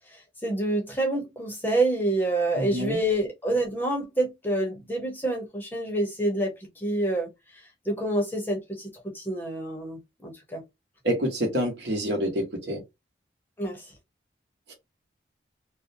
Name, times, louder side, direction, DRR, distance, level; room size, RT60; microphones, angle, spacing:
voice 1, 0.1-10.6 13.6-13.9, right 1 dB, 10° left, 0.7 m, -28 dB
voice 2, 2.6-3.0 11.0-12.8, equal, 70° right, 1.1 m, -27 dB
2.6 x 2.1 x 2.6 m
head